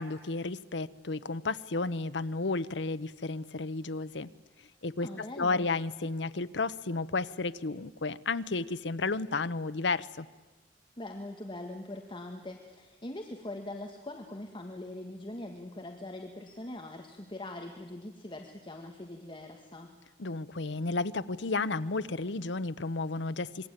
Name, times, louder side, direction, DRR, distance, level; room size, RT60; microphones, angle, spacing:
voice 1, 0.0-4.3 4.8-5.1 5.4-10.3 20.2-23.7, left 3 dB, 85° left, 13 dB, 0.9 m, -32 dB
voice 2, 5.0-5.7 11.0-19.9, left 1 dB, 30° left, 2 dB, 1.8 m, -42 dB
26.5 x 22.5 x 9.1 m, 1.2 s
head